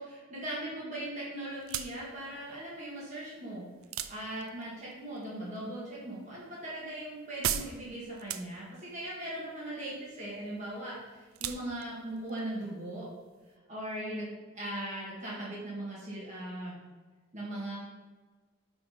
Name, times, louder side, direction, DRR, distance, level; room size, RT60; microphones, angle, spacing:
voice 1, 0.0-3.6 4.1-13.1 13.7-16.7 17.3-17.8, right 1 dB, 35° right, -6 dB, 1.8 m, -39 dB
sound 1, 1.5-13.6, right 10 dB, 75° right, 0.4 m, -42 dB
5.0 x 4.7 x 5.6 m, 1.3 s
head